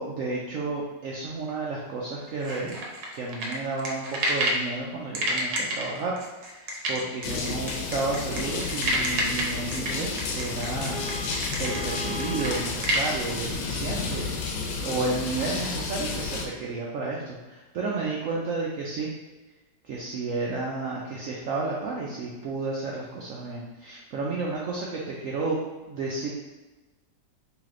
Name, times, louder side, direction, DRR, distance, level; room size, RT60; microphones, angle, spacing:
voice 1, 0.0-2.8 3.1-19.1 19.8-25.6 25.9-26.3, right 3 dB, 90° right, -3 dB, 0.7 m, -32 dB
sound 1, 2.4-4.7 5.1-13.1, right 1 dB, 65° right, 1.2 m, -29 dB
sound 2, 7.2-16.5, left 4 dB, 85° left, 1.3 m, -31 dB
Vehicle horn car horn honking, 10.9-12.7, left 1 dB, 65° left, 1.3 m, -38 dB
3.3 x 3.2 x 3.6 m, 1.2 s
omnidirectional pair, 2.0 m